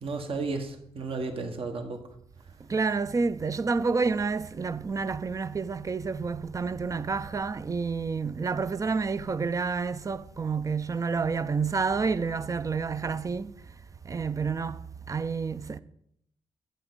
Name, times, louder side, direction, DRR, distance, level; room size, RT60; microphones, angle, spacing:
voice 1, 0.0-2.0, right 3 dB, 55° right, 1.3 m, -33 dB
voice 2, 2.7-13.6 14.0-14.8 15.1-15.8, right 4 dB, 30° right, 0.5 m, -29 dB
11.5 x 8.0 x 3.7 m
supercardioid pair, 60°, 11 cm